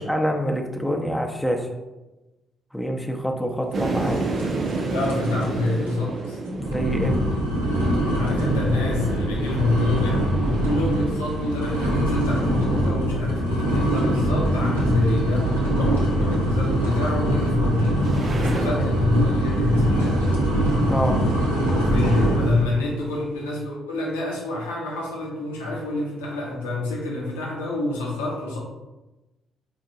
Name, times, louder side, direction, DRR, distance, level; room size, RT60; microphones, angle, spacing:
voice 1, 0.0-1.7 2.7-4.2 6.5-7.2 18.8-19.0 20.9-21.2, equal, 5° left, 3 dB, 0.6 m, -26 dB
sound 1, 3.7-18.7, right 3 dB, 45° right, 0.5 m, -33 dB
sound 2, 4.4-4.8 5.0-5.4 5.9-6.0 6.5-22.7, right 1 dB, 85° right, 0.6 m, -23 dB
voice 2, 4.9-6.4 8.1-20.4 21.7-28.6, left 2 dB, 75° left, -4 dB, 0.8 m, -27 dB
4.6 x 2.6 x 2.6 m, 1.1 s
figure-of-eight pair, 40°, 0 cm